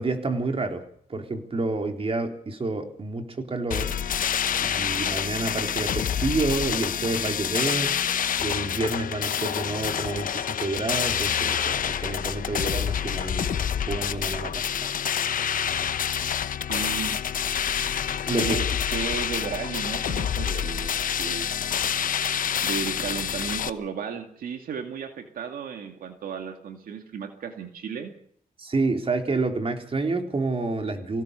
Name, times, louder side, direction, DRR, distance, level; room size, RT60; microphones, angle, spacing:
voice 1, 0.0-4.0 4.6-8.0 8.4-14.9 18.3-18.6 28.6-31.2, right 3 dB, 40° right, 5 dB, 3.9 m, -29 dB
sound 1, 3.7-23.7, left 8 dB, 70° left, 1.0 m, -27 dB
voice 2, 16.7-17.2 18.4-20.9 21.2-21.5 22.6-28.1, right 6 dB, 85° right, 6 dB, 2.2 m, -34 dB
23.5 x 17.5 x 6.9 m, 0.64 s
cardioid pair, 75°, 14 cm